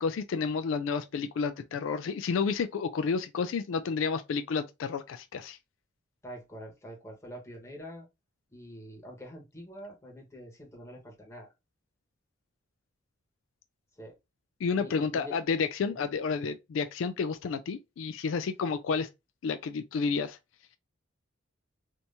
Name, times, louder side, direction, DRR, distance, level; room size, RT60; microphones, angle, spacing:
voice 1, 0.0-5.6 14.6-19.1 19.4-20.4, left 5 dB, 75° left, 0.3 m, -30 dB
voice 2, 6.2-8.1 8.5-11.5 14.0-14.1 14.7-15.3 15.9-16.0, equal, 15° left, 1.3 m, -45 dB
3.3 x 2.9 x 2.6 m
head